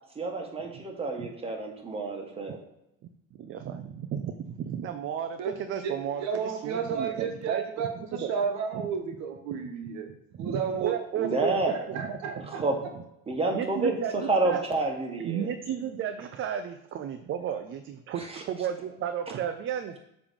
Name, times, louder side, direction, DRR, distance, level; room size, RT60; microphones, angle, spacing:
voice 1, 0.1-0.7 1.0-2.6 11.2-11.7 12.6-12.7 13.3-13.9 14.3-15.5, right 2 dB, 20° right, 1 dB, 1.6 m, -28 dB
voice 2, 3.4-7.6 8.1-8.3 8.7-8.8 10.4-12.7 12.9-13.0 13.5-14.6 15.2-17.8 18.1-20.0, right 9 dB, 40° right, 7 dB, 0.6 m, -33 dB
voice 3, 6.2-10.1 10.4-11.0 11.3-11.4 11.7-12.6, right 6 dB, 60° right, 4 dB, 1.3 m, -32 dB
7.1 x 3.4 x 5.3 m, 0.83 s
cardioid pair, 115°, 31 cm